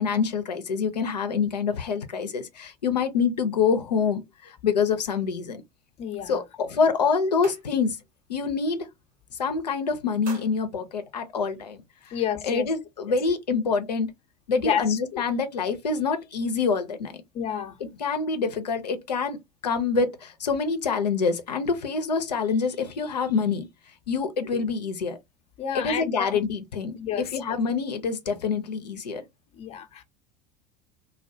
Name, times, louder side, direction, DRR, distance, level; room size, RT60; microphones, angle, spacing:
voice 1, 0.0-5.6 6.3-8.0 8.3-8.9 9.4-11.8 12.1-12.2 12.4-14.1 14.5-17.2 18.0-19.4 19.6-23.7 24.1-25.2 25.7-27.0 27.3-29.2, left 5 dB, 80° left, 0.5 m, -26 dB
voice 2, 6.0-6.4 12.1-12.7 14.6-15.2 17.3-17.8 25.6-26.4 26.9-27.2 29.5-30.0, left 9 dB, 30° left, 0.5 m, -30 dB
sound 1, 6.4-6.7 7.0-8.1 8.5-8.8 9.1-9.6 10.0-11.8, right 4 dB, 65° right, 1.1 m, -48 dB
2.2 x 2.2 x 2.6 m
figure-of-eight pair, 80°, 21 cm